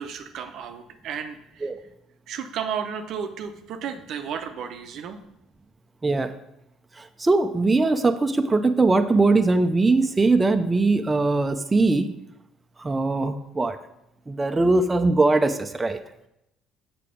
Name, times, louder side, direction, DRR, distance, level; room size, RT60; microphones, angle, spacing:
voice 1, 0.0-1.7 2.3-5.2, right 7 dB, 65° right, 7 dB, 0.7 m, -33 dB
voice 2, 6.0-6.3 7.0-12.1 12.8-13.8 14.3-16.0, right 3 dB, 20° right, 7 dB, 0.6 m, -21 dB
6.7 x 5.9 x 5.1 m, 0.83 s
hypercardioid pair, 65°, 0 cm